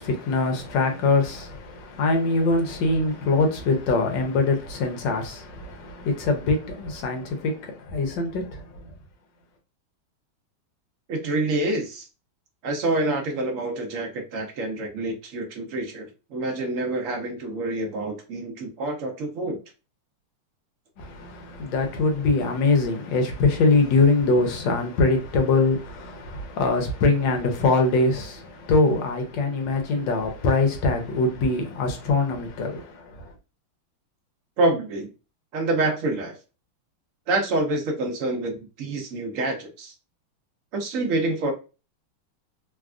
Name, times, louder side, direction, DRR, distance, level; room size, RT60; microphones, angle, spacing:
voice 1, 0.0-8.9 21.0-33.3, left 3 dB, 70° left, 1.2 m, -23 dB
voice 2, 11.1-12.1 12.6-19.6 34.6-35.1 35.5-36.4 37.3-39.9 40.7-41.5, right 2 dB, 65° right, 0.8 m, -27 dB
3.4 x 2.3 x 2.3 m
omnidirectional pair, 2.3 m